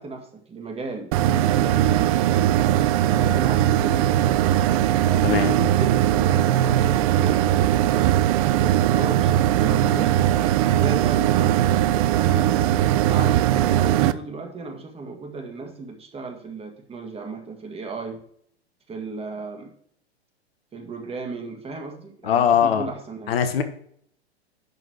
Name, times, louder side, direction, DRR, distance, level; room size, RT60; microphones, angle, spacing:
voice 1, 0.0-2.1 3.1-4.3 5.1-10.1 10.8-12.6 13.1-18.2 18.9-19.7 20.7-23.3, right 3 dB, 15° right, 3 dB, 1.7 m, -35 dB
sound 1, 1.1-14.1, right 12 dB, 35° right, 0.4 m, -20 dB
voice 2, 5.2-5.5 22.2-22.9 23.3-23.6, left 8 dB, 60° left, 8 dB, 1.3 m, -20 dB
11.0 x 3.9 x 6.3 m, 0.63 s
figure-of-eight pair, 100°, 33 cm